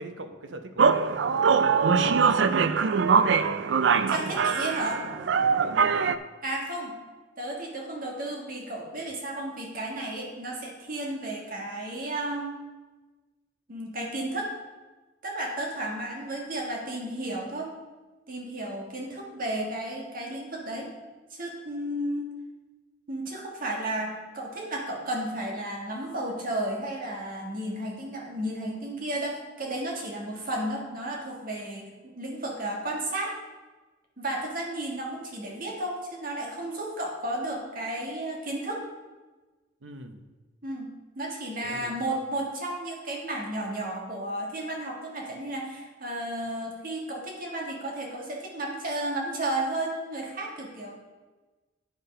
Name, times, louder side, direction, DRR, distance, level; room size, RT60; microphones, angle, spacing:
voice 1, 0.0-2.3 3.0-4.4 5.4-6.0 39.8-40.3 41.6-42.0, right 1 dB, 90° right, 7 dB, 0.8 m, -42 dB
sound 1, 0.8-6.2, right 5 dB, 70° right, 0.4 m, -22 dB
voice 2, 4.1-5.0 6.4-6.9 7.4-12.5 13.7-14.5 15.2-17.7 18.3-20.9 21.3-22.3 23.1-33.4 34.2-38.8 40.6-40.9 41.1-51.0, right 1 dB, 50° right, -1 dB, 1.8 m, -33 dB
9.0 x 5.6 x 5.5 m, 1.2 s
head